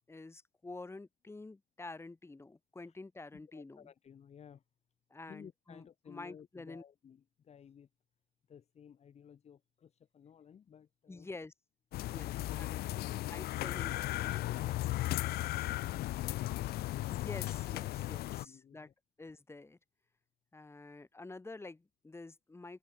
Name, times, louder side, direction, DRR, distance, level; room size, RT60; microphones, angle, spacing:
voice 1, 0.1-3.9 5.1-6.8 11.1-11.5 12.1-12.7 13.3-13.9 17.0-18.9 19.2-19.8 20.5-22.8, left 3 dB, 15° left, 2.9 m, -48 dB
voice 2, 3.3-4.6 5.3-7.9 8.5-11.3 12.5-13.3 13.6-15.4 18.4-18.9, left 8 dB, 40° left, 1.3 m, -55 dB
sound 1, 11.9-18.4, left 16 dB, 70° left, 0.5 m, -36 dB
cardioid pair, 110°, 17 cm